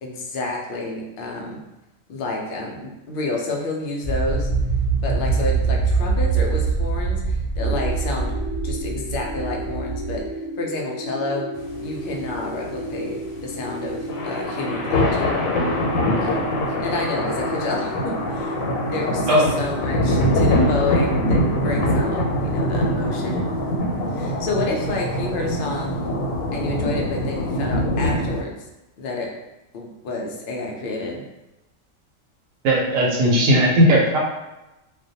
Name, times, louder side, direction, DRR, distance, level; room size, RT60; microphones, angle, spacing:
voice 1, 0.0-1.6 2.1-4.5 5.0-8.3 8.6-10.2 10.6-11.5 11.8-15.6 16.2-18.6 18.8-23.4 24.1-25.9 26.5-28.6 29.0-29.3 29.7-31.2, left 2 dB, 70° left, -1 dB, 0.5 m, -29 dB
sound 1, 4.0-10.3, right 4 dB, 60° right, 0.7 m, -23 dB
sound 2, 7.6-23.8, equal, 35° left, 0.7 m, -33 dB
sound 3, 11.6-28.4, left 1 dB, 85° left, 1.1 m, -23 dB
voice 2, 32.6-34.2, equal, 85° right, -2 dB, 1.1 m, -17 dB
2.4 x 2.2 x 2.7 m, 0.99 s
omnidirectional pair, 1.4 m